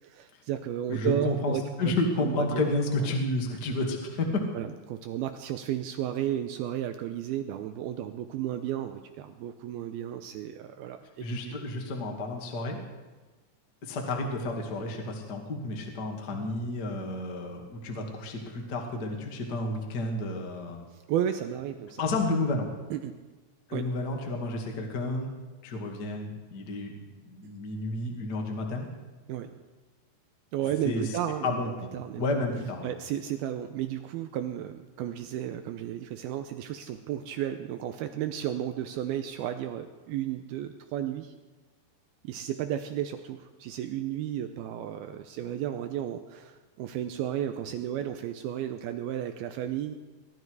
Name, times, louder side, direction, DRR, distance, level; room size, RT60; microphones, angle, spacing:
voice 1, 0.0-1.9 2.2-2.7 3.0-3.1 4.5-11.6 20.9-22.0 22.9-23.2 23.7-23.8 29.3-29.5 30.5-32.2 32.8-41.3 42.2-49.9, right 11 dB, 85° right, 8 dB, 2.3 m, -33 dB
voice 2, 0.9-4.4 11.2-12.8 13.8-20.8 22.0-22.7 23.7-25.3 25.6-26.9 27.2-28.9 30.8-31.1 31.4-31.9 32.2-32.9, left 2 dB, 35° left, 1 dB, 1.7 m, -31 dB
21.5 x 12.5 x 4.8 m, 1.2 s
omnidirectional pair, 5.0 m